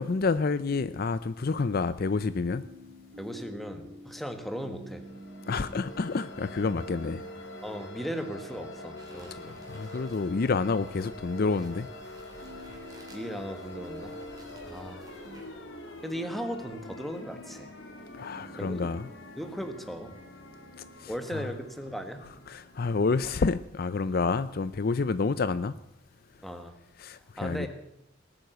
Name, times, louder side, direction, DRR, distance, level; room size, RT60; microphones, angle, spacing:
voice 1, 0.0-2.7 5.5-7.2 9.4-11.9 18.1-19.1 21.0-21.5 22.5-25.8 27.0-27.7, left 4 dB, 50° left, 14 dB, 0.5 m, -29 dB
sound 1, 2.1-15.4, equal, 50° right, 1.0 m, -49 dB
voice 2, 3.2-5.0 7.6-9.6 13.1-14.1 14.7-15.1 16.0-17.7 18.6-18.9 19.4-20.1 21.1-22.2 26.4-26.7 27.4-27.7, equal, ahead, 6 dB, 1.5 m, -37 dB
sound 2, 4.9-23.5, left 1 dB, 65° left, 2.3 m, -45 dB
sound 3, 8.9-15.6, right 1 dB, 20° right, 3.3 m, -55 dB
19.0 x 8.9 x 8.0 m, 0.81 s
head